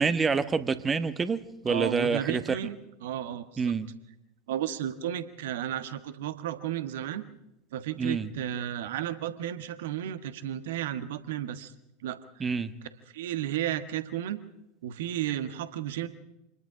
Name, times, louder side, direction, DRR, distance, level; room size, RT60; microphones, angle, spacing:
voice 1, 0.0-2.4 3.6-3.9 8.0-8.3 12.4-12.7, right 5 dB, 20° right, 1.2 m, -27 dB
voice 2, 1.7-3.7 4.5-7.2 7.7-11.7 12.0-12.6 13.1-14.4 14.8-16.1, right 11 dB, 60° right, 1.4 m, -33 dB
27.0 x 20.5 x 5.0 m
figure-of-eight pair, 80°, 0 cm